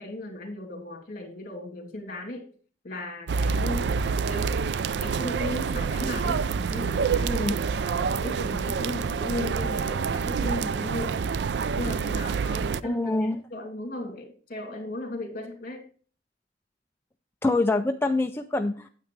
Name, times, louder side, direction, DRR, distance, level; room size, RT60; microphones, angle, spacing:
voice 1, 0.0-2.5 2.8-4.7 5.0-11.2 11.6-15.8, left 1 dB, 50° left, 4 dB, 2.6 m, -36 dB
sound 1, 3.3-12.8, right 5 dB, 65° right, 0.4 m, -27 dB
voice 2, 7.2-7.6 12.8-13.4 17.4-18.9, left 2 dB, 15° left, 5 dB, 0.4 m, -25 dB
9.2 x 8.3 x 3.2 m, 0.42 s
head